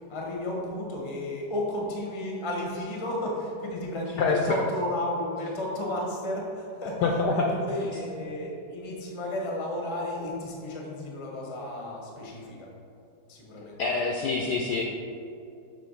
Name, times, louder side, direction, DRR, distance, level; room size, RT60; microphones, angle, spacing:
voice 1, 0.1-12.7 13.3-13.8, left 1 dB, 35° left, -2 dB, 0.4 m, -33 dB
voice 2, 4.2-4.6 7.0-7.6 7.9-8.3 13.8-14.8, left 4 dB, 80° left, 0 dB, 0.9 m, -26 dB
6.7 x 3.1 x 5.4 m, 2.6 s
omnidirectional pair, 2.3 m